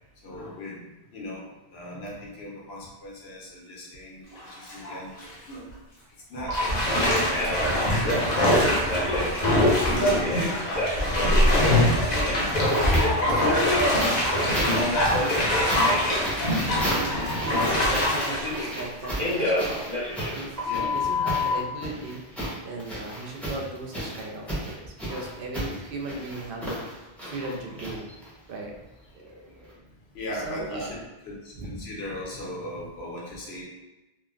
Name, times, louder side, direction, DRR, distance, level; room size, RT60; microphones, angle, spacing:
voice 1, 0.2-0.8 1.1-5.1 5.5-5.7 6.3-6.6 7.2-9.2 9.9-10.1 10.5-11.6 12.4-13.7 15.2-15.6 16.3-17.4 20.6-21.5 23.0-23.3 25.1-25.3 27.4-27.6 29.8-33.6, left 1 dB, 80° left, -4 dB, 1.0 m, -39 dB
Bathtub (filling or washing), 4.3-4.8 5.2-5.3 6.5-19.6 20.0-20.1, left 1 dB, 50° left, 0.6 m, -24 dB
Telephone, 6.5-6.6 7.0-7.6 8.0-9.4 10.0-12.4 12.7-15.5 15.8-16.2 17.5-18.8 19.2-21.5, left 1 dB, 40° right, 1.2 m, -28 dB
sound 1, 11.6-13.3 14.0-28.5 29.6-29.7, right 1 dB, ahead, 0.7 m, -34 dB
voice 2, 12.7-15.6 16.3-19.9 20.3-22.2 22.6-27.0 27.3-28.0 28.5-28.8 29.1-29.7 30.3-30.9 31.6-31.7, right 2 dB, 65° right, -1 dB, 0.7 m, -37 dB
3.1 x 2.1 x 2.4 m, 1.0 s
omnidirectional pair, 1.1 m